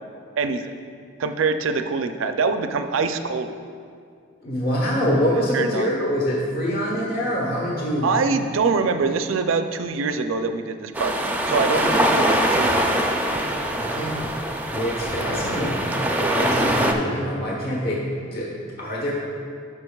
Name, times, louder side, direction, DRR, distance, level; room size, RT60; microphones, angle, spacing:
voice 1, 0.4-0.7 1.2-3.5 5.5-5.9 8.0-11.2 11.5-12.8, right 4 dB, 75° right, 8 dB, 0.4 m, -24 dB
voice 2, 4.4-8.1 13.8-14.2 14.7-19.1, equal, 50° left, -4 dB, 1.1 m, -25 dB
sound 1, 10.9-16.9, right 1 dB, 10° right, 0.4 m, -23 dB
12.5 x 5.9 x 2.3 m, 2.3 s
head